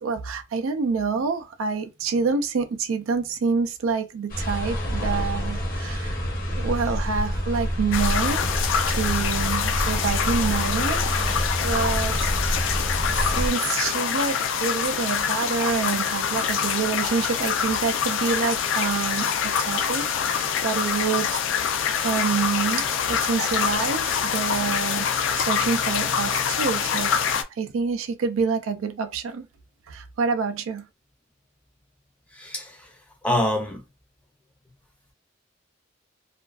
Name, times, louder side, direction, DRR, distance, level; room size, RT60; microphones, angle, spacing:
voice 1, 0.0-8.5 8.9-12.8 13.1-21.7 22.0-29.5 29.9-30.9, right 5 dB, 85° right, 0.4 m, -27 dB
sound 1, 4.3-13.5, equal, 45° left, 0.8 m, -27 dB
sound 2, 7.9-27.4, left 7 dB, 65° left, 0.3 m, -25 dB
voice 2, 32.3-33.8, left 1 dB, 5° left, 0.5 m, -27 dB
2.4 x 2.3 x 2.3 m
head